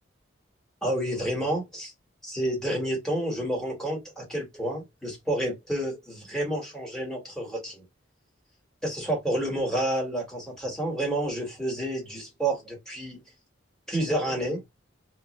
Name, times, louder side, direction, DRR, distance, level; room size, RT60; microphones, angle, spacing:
voice 1, 0.8-1.9 2.2-7.8 8.8-13.2 13.9-14.6, right 1 dB, 5° left, 1.4 m, -29 dB
3.0 x 2.4 x 3.0 m
head